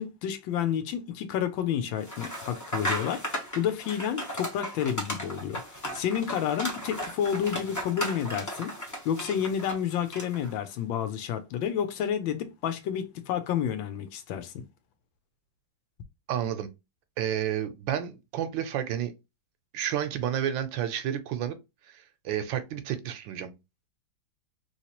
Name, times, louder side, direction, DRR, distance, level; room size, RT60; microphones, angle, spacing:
voice 1, 0.0-5.6 5.9-8.7 9.0-14.5, left 9 dB, 75° left, 1.4 m, -30 dB
sound 1, 2.0-10.5, equal, 20° left, 0.4 m, -36 dB
voice 2, 16.3-16.7 17.2-19.1 19.7-21.6 21.9-23.5, right 10 dB, 75° right, 1.2 m, -30 dB
3.2 x 3.1 x 2.8 m
omnidirectional pair, 2.2 m